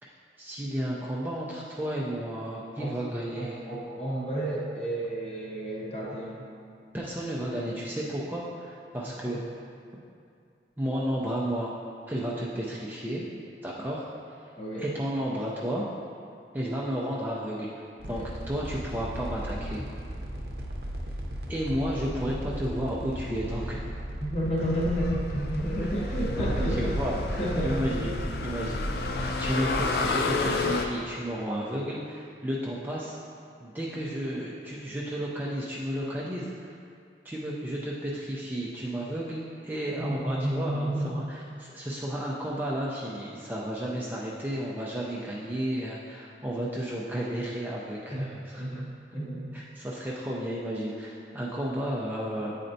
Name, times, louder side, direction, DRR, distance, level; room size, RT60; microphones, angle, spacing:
voice 1, 0.4-3.6 6.9-9.4 10.8-11.7 12.1-13.2 13.6-14.1 14.8-15.9 16.5-17.7 18.1-19.9 21.5-23.8 26.3-28.1 28.4-28.8 29.1-33.2 33.6-36.7 37.2-48.8 49.5-52.6, equal, 10° right, -5 dB, 0.4 m, -32 dB
voice 2, 3.3-6.4 9.2-9.4 14.6-14.8 18.0-18.3 24.2-27.0 27.4-27.9 40.0-41.3 48.1-48.2 48.6-49.6, right 1 dB, 35° left, -5 dB, 1.1 m, -31 dB
sound 1, 18.0-29.1, equal, 60° right, 0.7 m, -36 dB
sound 2, 24.6-30.9, left 3 dB, 60° left, 0.4 m, -30 dB
8.9 x 4.3 x 2.6 m, 2.3 s
head